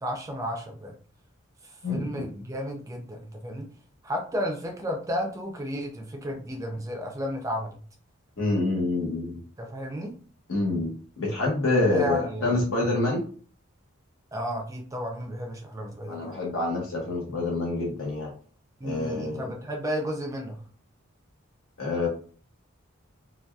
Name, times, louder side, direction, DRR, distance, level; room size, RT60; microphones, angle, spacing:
voice 1, 0.0-0.9 1.6-3.7 4.0-7.8 9.6-10.1 11.8-12.6 14.3-16.4 18.8-20.6, equal, 15° right, 2 dB, 0.4 m, -33 dB
voice 2, 1.8-2.2 8.4-9.4 10.5-10.9 11.2-13.2 16.1-18.3 18.8-19.5 21.8-22.1, left 2 dB, 80° left, -2 dB, 1.1 m, -27 dB
2.6 x 2.2 x 2.2 m, 0.42 s
head